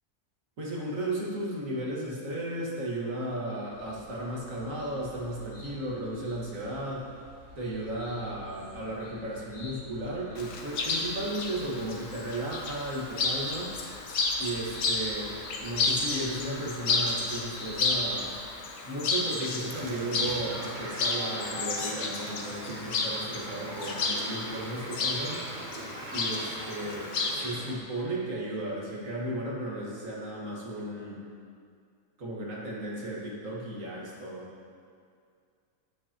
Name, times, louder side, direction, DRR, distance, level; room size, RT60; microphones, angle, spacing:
voice 1, 0.6-7.1 7.6-13.8 14.4-18.4 18.9-25.4 26.1-31.3 32.2-34.5, right 1 dB, 75° right, -4 dB, 2.1 m, -35 dB
sound 1, 3.7-18.5, left 2 dB, 55° left, 1.6 m, -50 dB
Chirp tweet, 10.4-27.5, left 3 dB, 75° left, 1.3 m, -32 dB
sound 2, 19.6-27.8, right 2 dB, 40° right, 0.8 m, -42 dB
10.5 x 9.9 x 2.9 m, 2.3 s
omnidirectional pair, 1.4 m